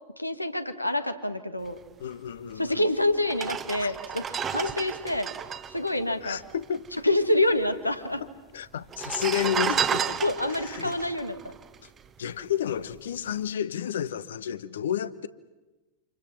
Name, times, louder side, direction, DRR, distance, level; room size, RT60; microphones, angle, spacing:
voice 1, 0.2-1.8 2.6-5.3 5.7-6.4 7.0-8.2 10.2-11.5, left 1 dB, 85° left, 1.6 m, -27 dB
voice 2, 2.0-2.9 3.8-3.9 6.2-6.9 8.2-10.1 10.5-11.0 12.2-15.3, left 10 dB, 65° left, 1.0 m, -31 dB
sound 1, 2.6-2.7 3.2-6.9 7.2-7.3 7.4-8.1 8.8-12.3 12.8-13.0, right 7 dB, 25° right, 1.1 m, -32 dB
29.5 x 27.5 x 6.0 m
figure-of-eight pair, 90°, 0 cm